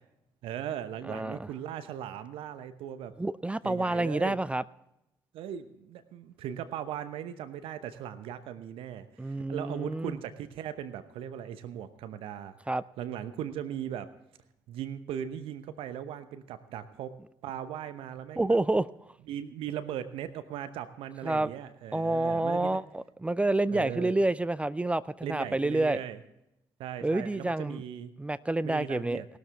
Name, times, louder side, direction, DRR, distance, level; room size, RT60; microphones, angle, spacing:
voice 1, 0.4-3.1 3.6-4.4 5.3-12.6 13.0-14.1 14.7-17.2 17.4-18.6 19.3-22.8 23.7-24.2 25.2-26.2 26.8-28.1 28.6-29.3, right 10 dB, 60° right, 12 dB, 0.9 m, -38 dB
voice 2, 1.1-1.5 3.2-4.6 9.2-10.2 12.7-12.8 18.4-18.9 21.2-21.5 21.9-26.0 27.0-27.8 28.2-29.2, right 2 dB, 10° right, 17 dB, 0.4 m, -28 dB
19.0 x 12.5 x 3.4 m, 0.85 s
figure-of-eight pair, 50°, 11 cm